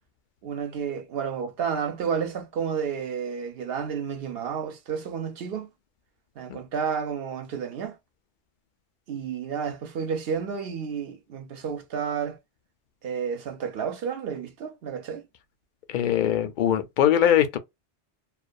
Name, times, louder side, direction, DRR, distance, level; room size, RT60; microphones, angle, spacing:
voice 1, 0.4-5.7 6.4-8.0 9.1-12.4 13.0-15.2, right 7 dB, 65° right, 0.8 m, -31 dB
voice 2, 15.9-17.6, left 10 dB, 55° left, 0.5 m, -22 dB
2.3 x 2.2 x 2.5 m
omnidirectional pair, 1.2 m